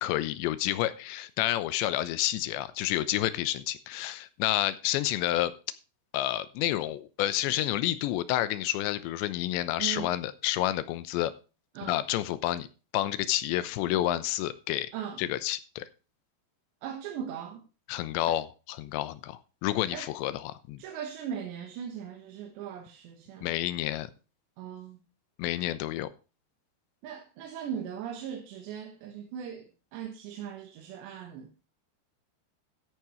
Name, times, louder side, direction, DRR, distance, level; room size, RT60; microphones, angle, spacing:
voice 1, 0.0-5.5 6.1-11.3 11.9-12.7 12.9-14.9 15.2-15.9 17.9-20.8 23.4-24.1 25.4-26.1, left 14 dB, 85° left, 3.2 m, -29 dB
voice 2, 9.8-10.1 11.8-12.0 14.9-15.2 16.8-17.6 19.9-20.1 20.8-23.5 24.6-25.0 27.0-31.5, right 8 dB, 80° right, 3.6 m, -39 dB
13.5 x 10.5 x 3.1 m
omnidirectional pair, 5.0 m